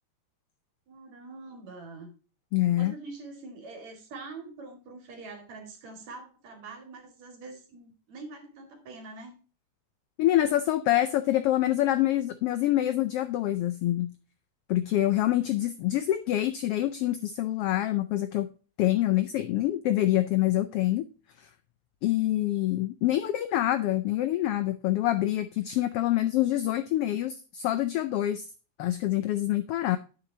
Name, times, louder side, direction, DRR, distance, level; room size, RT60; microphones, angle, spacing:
voice 1, 0.9-2.1 2.8-9.3, right 3 dB, 70° right, 4 dB, 3.5 m, -44 dB
voice 2, 2.5-2.9 10.2-14.1 14.7-18.5 18.8-21.1 21.4-21.5 22.0-28.5 28.8-30.0, left 14 dB, 90° left, 11 dB, 1.3 m, -26 dB
10.0 x 8.0 x 2.7 m, 0.35 s
omnidirectional pair, 3.3 m